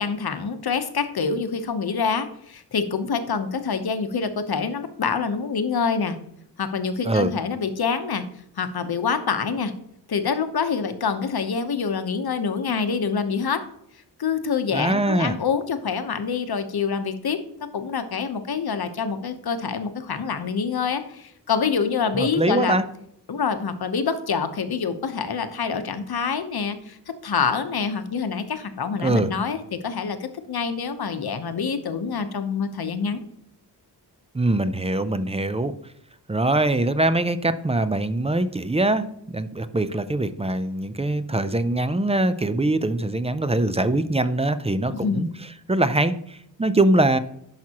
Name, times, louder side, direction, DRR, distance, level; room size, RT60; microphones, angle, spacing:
voice 1, 0.0-6.2 6.6-8.2 8.6-9.7 10.1-13.7 14.2-17.4 17.7-22.8 23.3-33.2 44.9-45.3, left 5 dB, 60° left, 9 dB, 0.9 m, -26 dB
voice 2, 14.7-15.4 22.1-22.8 29.0-29.3 34.3-35.7 36.3-45.3 45.7-47.2, right 2 dB, 15° right, 12 dB, 0.4 m, -23 dB
10.5 x 5.9 x 2.9 m, 0.74 s
wide cardioid pair, 135°, 41 cm